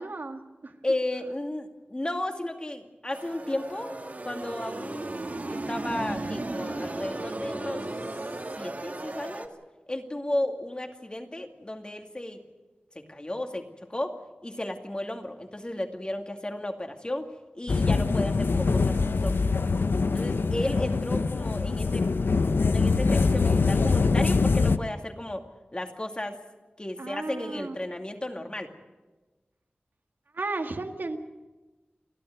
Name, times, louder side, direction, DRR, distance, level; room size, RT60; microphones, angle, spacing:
voice 1, 0.0-0.8 27.0-27.8 30.3-31.2, right 3 dB, 65° right, 5 dB, 1.9 m, -35 dB
voice 2, 0.8-4.0 4.2-5.1 5.5-7.9 8.6-9.5 9.9-12.4 13.0-14.2 14.4-19.4 20.1-22.1 22.7-25.5 25.7-26.4 26.8-28.7, left 1 dB, 25° left, 4 dB, 2.3 m, -34 dB
sound 1, 3.1-9.5, right 2 dB, 45° right, 2.1 m, -35 dB
sound 2, 17.7-24.8, left 4 dB, 75° left, 0.7 m, -24 dB
29.0 x 12.0 x 9.4 m, 1.2 s
wide cardioid pair, 80°, 4 cm